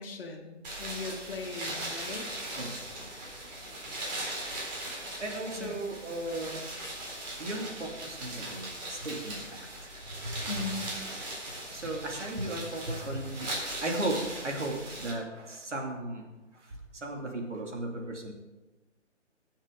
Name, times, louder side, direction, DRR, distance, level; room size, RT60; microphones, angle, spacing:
voice 1, 0.0-2.3 5.6-5.8 10.5-10.9, left 3 dB, 50° left, 2 dB, 1.9 m, -38 dB
sound 1, 0.6-15.1, right 1 dB, 35° right, 4.0 m, -39 dB
voice 2, 2.6-3.1 5.2-6.7 7.4-10.4 11.7-13.5 13.8-16.2 16.5-18.3, right 1 dB, 70° right, 1 dB, 2.7 m, -36 dB
18.5 x 7.4 x 3.9 m, 1.1 s
figure-of-eight pair, 145°, 36 cm